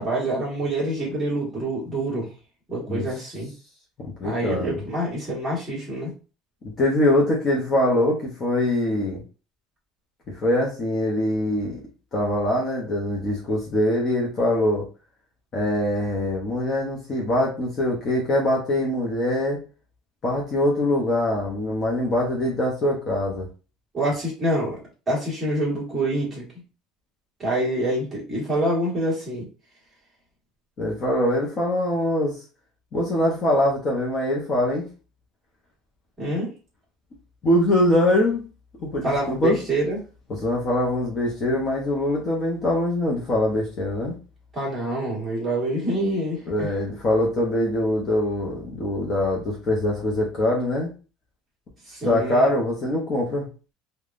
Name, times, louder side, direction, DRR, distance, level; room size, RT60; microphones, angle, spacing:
voice 1, 0.0-2.3 2.7-3.5 4.2-6.1 23.9-24.8 25.1-26.4 27.4-29.5 36.2-36.5 39.0-40.0 44.5-46.7 51.9-52.5, right 1 dB, 10° right, -6 dB, 1.3 m, -26 dB
voice 2, 4.0-4.8 6.6-9.2 10.3-11.8 12.1-14.8 15.5-19.6 20.2-23.5 30.8-32.4 32.9-34.9 37.4-38.4 38.8-39.6 40.3-44.1 46.5-50.9 52.0-53.5, left 1 dB, 25° left, -2 dB, 0.6 m, -23 dB
3.3 x 2.2 x 2.4 m, 0.33 s
cardioid pair, 175°, 0 cm